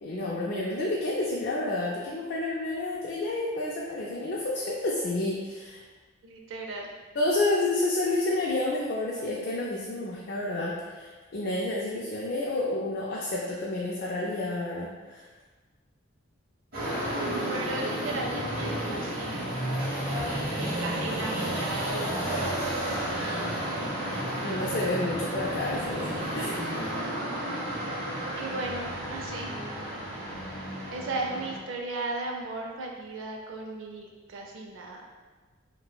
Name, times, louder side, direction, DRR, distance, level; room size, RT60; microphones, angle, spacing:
voice 1, 0.0-5.8 7.2-15.3 24.4-26.5, left 2 dB, 50° left, -4 dB, 0.3 m, -30 dB
voice 2, 6.2-6.9 17.5-19.5 20.6-22.6 23.2-23.9 27.0-27.3 28.3-29.5 30.9-35.1, right 2 dB, 70° right, 1 dB, 0.4 m, -36 dB
sound 1, 16.7-31.6, right 1 dB, 45° right, 1.0 m, -32 dB
sound 2, 16.8-19.5 20.4-22.4, right 1 dB, 35° left, 0.7 m, -45 dB
4.1 x 2.1 x 2.2 m, 1.3 s
head